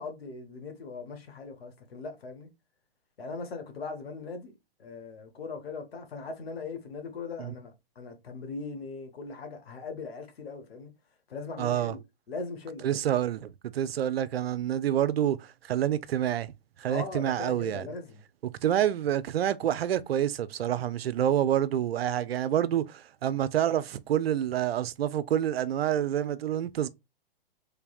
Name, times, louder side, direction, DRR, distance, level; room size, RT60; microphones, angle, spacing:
voice 1, 0.0-2.5 3.2-4.5 4.8-10.9 11.3-12.0 12.3-13.0 16.9-18.2, left 4 dB, 75° left, 1.3 m, -39 dB
voice 2, 11.6-12.0 12.8-16.5 16.8-17.9 18.4-26.9, right 11 dB, 75° right, 0.5 m, -28 dB
3.5 x 3.3 x 2.4 m
hypercardioid pair, 130°, 30 cm